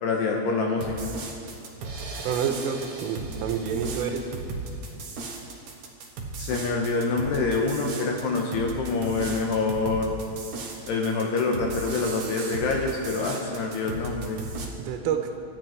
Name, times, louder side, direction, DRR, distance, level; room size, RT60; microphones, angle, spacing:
voice 1, 0.0-1.1 6.4-10.1 10.9-14.4, left 3 dB, 70° left, 1 dB, 2.7 m, -26 dB
sound 1, 0.8-14.7, right 3 dB, 70° right, 1.8 m, -36 dB
voice 2, 2.2-4.2 14.8-15.3, right 7 dB, 85° right, 5 dB, 3.5 m, -28 dB
25.5 x 10.0 x 4.7 m, 2.4 s
omnidirectional pair, 5.8 m